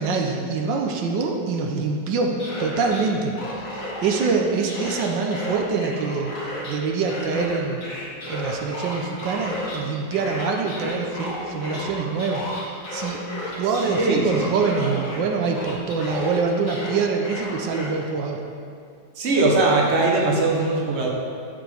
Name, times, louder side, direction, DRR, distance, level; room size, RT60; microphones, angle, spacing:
voice 1, 0.0-2.3 2.6-3.3 3.6-6.3 6.6-7.9 8.3-12.4 12.7-13.2 13.6-18.4, right 4 dB, 85° right, 2 dB, 1.5 m, -25 dB
sound 1, 2.2-3.0 3.3-4.3 4.7-6.7 7.0-9.8 10.1-15.2 15.5-17.9, left 1 dB, 50° left, 2.1 m, -33 dB
voice 2, 14.0-14.4 19.2-21.1, right 2 dB, 40° right, -2 dB, 1.5 m, -20 dB
12.0 x 7.2 x 3.5 m, 2.3 s
omnidirectional pair, 1.9 m